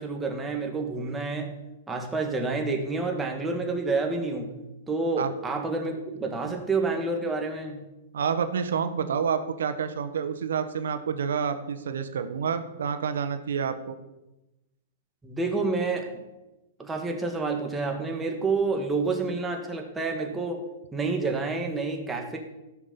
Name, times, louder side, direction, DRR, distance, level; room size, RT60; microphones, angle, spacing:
voice 1, 0.0-1.5 1.9-4.5 4.9-7.8 15.2-16.2 16.8-20.6 20.9-22.4, right 3 dB, 10° right, 3 dB, 1.8 m, -29 dB
voice 2, 8.1-14.0, right 7 dB, 85° right, 9 dB, 1.4 m, -28 dB
15.5 x 6.2 x 7.0 m, 1.0 s
hypercardioid pair, 155°, 0 cm